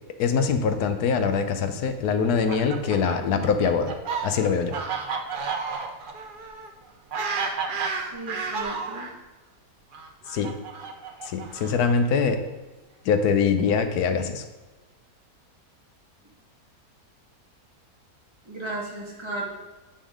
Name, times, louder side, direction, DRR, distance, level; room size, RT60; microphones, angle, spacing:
voice 1, 0.2-3.9 4.2-4.7 10.3-10.5 11.3-12.4 13.0-14.4, left 5 dB, 85° left, 8 dB, 1.3 m, -23 dB
Fowl, 2.2-9.1 9.9-12.0, right 5 dB, 50° right, 0.6 m, -32 dB
voice 2, 8.0-9.1 18.5-19.5, right 2 dB, 20° right, -4 dB, 1.7 m, -35 dB
9.2 x 3.7 x 5.0 m, 1.2 s
omnidirectional pair, 1.6 m